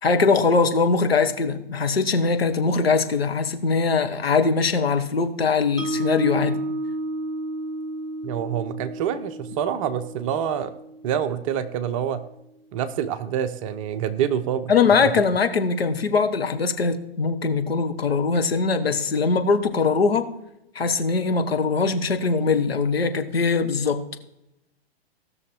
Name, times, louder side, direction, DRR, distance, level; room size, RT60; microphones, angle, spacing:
voice 1, 0.0-6.6 14.7-20.3 20.7-24.0, left 4 dB, 70° left, 1.3 m, -21 dB
Mallet percussion, 5.8-11.9, right 1 dB, ahead, 0.3 m, -32 dB
voice 2, 8.2-10.7 11.0-12.2 12.7-15.1, right 9 dB, 30° right, 0.8 m, -27 dB
17.0 x 6.4 x 4.4 m
figure-of-eight pair, 115°, 32 cm